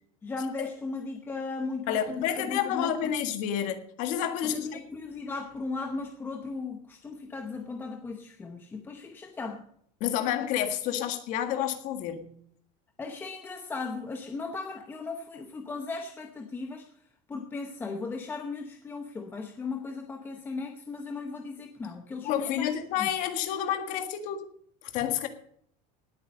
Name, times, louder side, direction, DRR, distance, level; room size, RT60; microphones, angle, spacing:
voice 1, 0.2-3.1 4.4-9.7 13.0-16.9 17.3-23.1, left 4 dB, 10° left, 4 dB, 0.9 m, -37 dB
voice 2, 1.9-4.8 10.0-12.3 22.2-24.5 24.8-25.3, left 10 dB, 45° left, 7 dB, 1.7 m, -29 dB
18.5 x 8.7 x 5.3 m, 0.66 s
cardioid pair, 175°, 18 cm